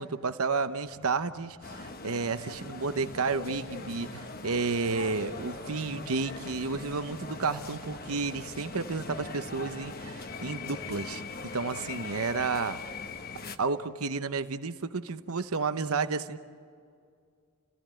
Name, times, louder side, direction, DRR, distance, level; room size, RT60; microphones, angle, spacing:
voice 1, 0.0-12.8 13.6-16.4, right 4 dB, 80° right, 11 dB, 0.9 m, -31 dB
sound 1, 0.8-2.1 3.4-4.1 5.8-9.4 10.1-11.6, equal, 65° left, 7.4 m, -58 dB
sound 2, 1.6-13.6, left 3 dB, 40° left, 1.0 m, -41 dB
30.0 x 16.5 x 9.0 m, 2.3 s
head